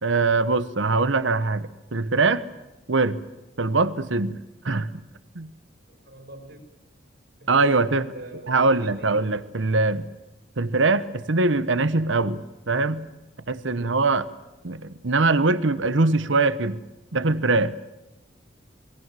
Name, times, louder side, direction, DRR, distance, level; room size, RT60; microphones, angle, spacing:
voice 1, 0.0-2.4 2.9-3.2 3.6-4.4 4.6-4.9 5.3-5.5 7.5-8.1 8.5-10.0 10.6-12.4 12.7-13.0 13.5-14.2 14.6-16.8 17.1-17.7, right 3 dB, 80° right, 14 dB, 1.1 m, -22 dB
voice 2, 5.9-6.6 7.4-9.3, right 1 dB, 60° right, 5 dB, 5.5 m, -44 dB
27.0 x 22.0 x 7.6 m, 0.98 s
head